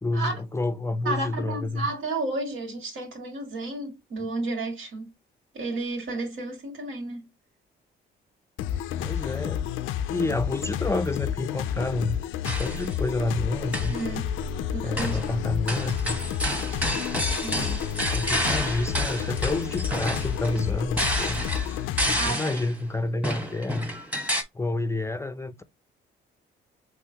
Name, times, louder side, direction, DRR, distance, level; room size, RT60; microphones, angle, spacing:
voice 1, 0.0-1.9 9.0-9.6 10.1-12.2 12.4-14.0 14.8-16.2 18.1-21.4 22.1-23.9 24.5-25.6, left 2 dB, 15° left, 0.5 m, -29 dB
voice 2, 1.0-5.1 5.5-7.2 13.9-14.3 14.7-15.2 16.7-16.8 17.4-17.8 22.2-22.5, right 2 dB, 75° right, 2.3 m, -32 dB
sound 1, 8.6-22.3, left 10 dB, 90° left, 0.4 m, -30 dB
sound 2, 12.4-12.9 13.6-14.1 15.0-15.3 15.7-22.7 23.2-24.4, equal, 5° right, 1.1 m, -30 dB
Telephone, 12.5-21.5, right 3 dB, 35° right, 0.8 m, -42 dB
5.5 x 3.1 x 2.8 m
cardioid pair, 90°, 20 cm